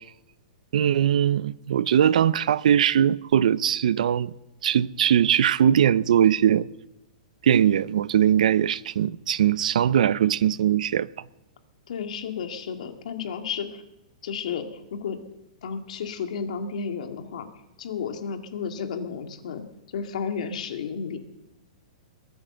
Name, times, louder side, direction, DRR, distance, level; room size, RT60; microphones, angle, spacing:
voice 1, 0.7-4.3 4.6-6.7 7.4-11.1, right 9 dB, 70° right, 0.6 m, -21 dB
voice 2, 11.9-13.8 14.2-15.2 15.6-17.5 17.8-19.6 19.9-21.2, left 6 dB, 65° left, 2.1 m, -32 dB
21.0 x 9.2 x 6.9 m
hypercardioid pair, 170°, 4 cm